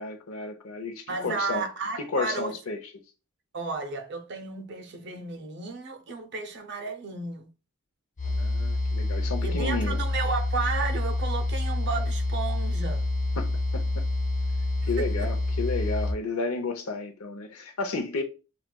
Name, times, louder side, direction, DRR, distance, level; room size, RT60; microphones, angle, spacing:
voice 1, 0.0-1.6 2.1-2.8 8.2-10.0 13.4-14.1 14.9-18.2, left 3 dB, 85° left, 0.7 m, -32 dB
voice 2, 1.1-2.5 3.5-7.5 9.4-13.1 15.0-15.3, right 4 dB, 55° right, 0.6 m, -33 dB
sound 1, 8.2-16.1, left 2 dB, 35° left, 0.5 m, -27 dB
5.8 x 2.4 x 2.2 m
head